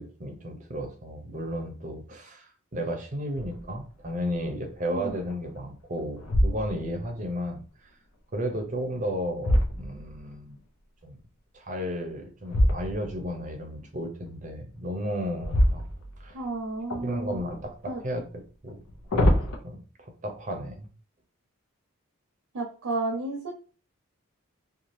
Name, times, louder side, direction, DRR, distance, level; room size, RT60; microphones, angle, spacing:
voice 1, 0.0-7.9 8.3-10.6 11.0-11.2 11.5-15.8 16.2-16.4 17.0-18.2 18.6-18.8 19.1-20.9, equal, 35° right, 4 dB, 0.6 m, -33 dB
sound 1, 3.3-3.8 4.3-4.4 5.0-5.6 6.2-7.1 8.7-10.4 12.5-13.3 15.4-16.5 16.9-17.6 18.7-19.6, equal, 85° left, 0.6 m, -26 dB
voice 2, 16.3-17.4 17.9-18.0 22.5-23.5, right 2 dB, 85° right, 2 dB, 0.6 m, -32 dB
2.7 x 2.3 x 3.1 m, 0.38 s
head